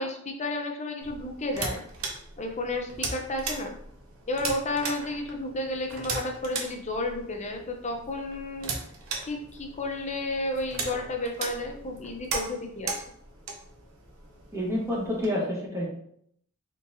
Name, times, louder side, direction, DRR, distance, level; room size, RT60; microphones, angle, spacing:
voice 1, 0.0-1.8 2.4-3.7 4.3-8.7 9.2-12.9, left 2 dB, 35° left, 3 dB, 0.7 m, -32 dB
sound 1, 1.0-15.3, right 4 dB, 70° right, 0.8 m, -38 dB
voice 2, 14.5-15.9, left 1 dB, 15° right, -4 dB, 1.3 m, -28 dB
4.1 x 3.7 x 2.6 m, 0.68 s
head